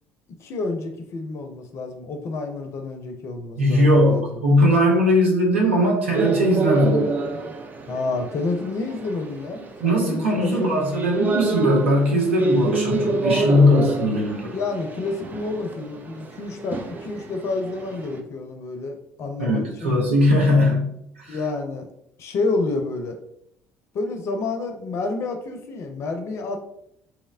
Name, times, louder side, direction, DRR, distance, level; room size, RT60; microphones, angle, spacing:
voice 1, 0.4-4.4 7.9-10.8 14.5-20.0 21.3-21.9 22.2-23.2 23.9-26.6, left 3 dB, 50° left, 5 dB, 0.4 m, -29 dB
voice 2, 3.6-7.1 9.8-14.5 19.4-21.4, left 1 dB, 85° right, -2 dB, 0.6 m, -19 dB
sound 1, 6.1-18.2, right 3 dB, 30° right, 0.4 m, -28 dB
2.9 x 2.0 x 2.3 m, 0.74 s
figure-of-eight pair, 60°, 6 cm